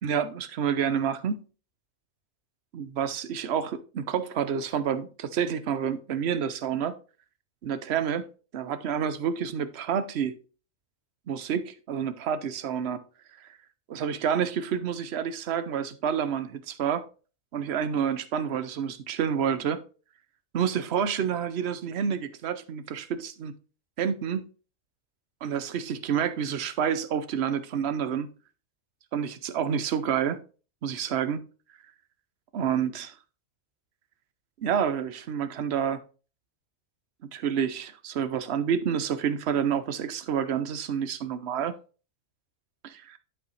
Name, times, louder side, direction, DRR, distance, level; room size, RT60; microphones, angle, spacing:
voice 1, 0.0-1.4 2.7-6.9 7.6-10.4 11.3-13.0 13.9-17.1 17.5-19.8 20.5-23.5 24.0-24.5 25.4-28.3 29.1-30.4 30.8-31.4 32.5-33.1 34.6-36.0 37.2-41.7 42.8-43.2, right 8 dB, 55° right, 0.9 m, -29 dB
11.0 x 5.2 x 3.2 m
omnidirectional pair, 1.4 m